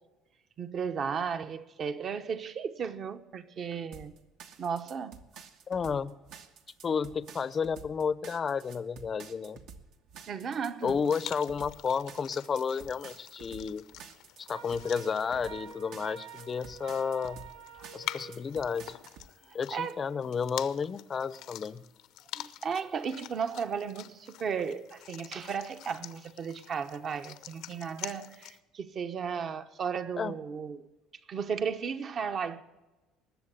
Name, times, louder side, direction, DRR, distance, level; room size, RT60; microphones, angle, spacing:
voice 1, 0.6-4.1 4.6-5.2 10.3-11.0 17.8-17.9 19.5-20.0 22.4-30.8 31.3-32.6, right 6 dB, 40° right, 1.0 m, -35 dB
sound 1, 3.9-19.3, right 6 dB, 65° right, 1.3 m, -50 dB
voice 2, 5.7-6.1 6.8-9.6 10.8-13.8 14.4-17.4 17.9-19.0 19.5-21.8 30.2-30.3, left 6 dB, 30° left, 0.6 m, -32 dB
sound 2, 10.8-28.6, left 14 dB, 70° left, 0.7 m, -46 dB
Wind instrument woodwind instrument, 14.5-18.4, right 7 dB, 80° right, 1.5 m, -47 dB
20.0 x 7.3 x 7.7 m
cardioid pair, 120°, 0 cm